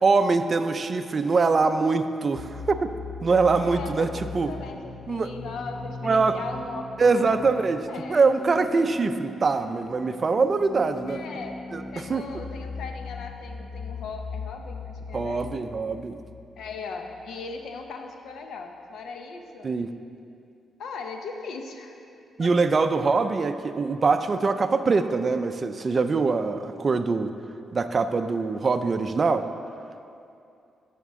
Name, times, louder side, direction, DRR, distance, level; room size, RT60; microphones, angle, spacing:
voice 1, 0.0-2.9 3.2-4.5 5.1-5.3 6.0-6.4 7.0-7.8 8.1-11.2 11.7-12.3 15.1-16.2 19.6-19.9 22.4-27.3 27.7-29.5, right 4 dB, 35° right, 9 dB, 0.4 m, -23 dB
sound 1, 2.4-17.9, left 3 dB, 45° left, 0.6 m, -39 dB
voice 2, 3.6-8.3 8.7-8.8 11.1-11.6 11.9-15.4 16.6-19.7 20.8-22.0 22.4-22.5, left 4 dB, 80° left, 4 dB, 0.7 m, -38 dB
12.5 x 5.9 x 3.6 m, 2.6 s
cardioid pair, 115°, 0 cm